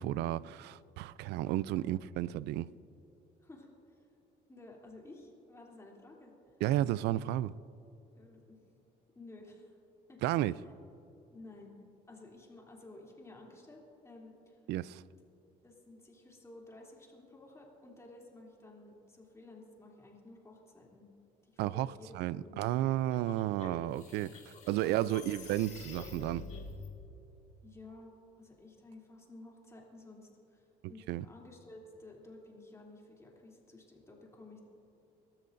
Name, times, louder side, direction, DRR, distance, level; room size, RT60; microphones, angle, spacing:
voice 1, 0.0-2.7 6.6-7.5 10.2-10.5 14.7-15.0 21.6-21.9 22.1-26.5 31.1-31.2, right 14 dB, 80° right, 0.4 m, -32 dB
voice 2, 3.4-4.1 4.5-6.6 8.1-8.6 9.1-9.7 10.1-10.7 11.3-11.8 12.1-14.6 15.6-21.1 21.4-22.1 22.4-22.8 25.0-25.3 27.6-34.6, left 2 dB, 15° left, 3.1 m, -53 dB
sound 1, 23.1-26.9, left 3 dB, 40° left, 2.1 m, -48 dB
25.5 x 13.5 x 2.6 m
cardioid pair, 110°, 17 cm